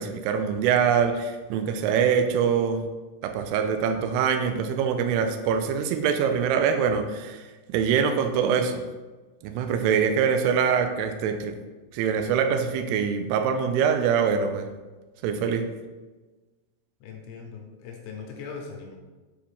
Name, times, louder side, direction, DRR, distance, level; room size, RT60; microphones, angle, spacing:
voice 1, 0.0-2.8 3.2-7.4 7.7-8.8 9.4-11.6 11.9-14.7 15.2-15.7, right 7 dB, 85° right, 7 dB, 2.3 m, -24 dB
voice 2, 17.0-19.0, left 5 dB, 80° left, 1 dB, 2.6 m, -40 dB
7.3 x 4.6 x 3.5 m, 1.2 s
omnidirectional pair, 5.2 m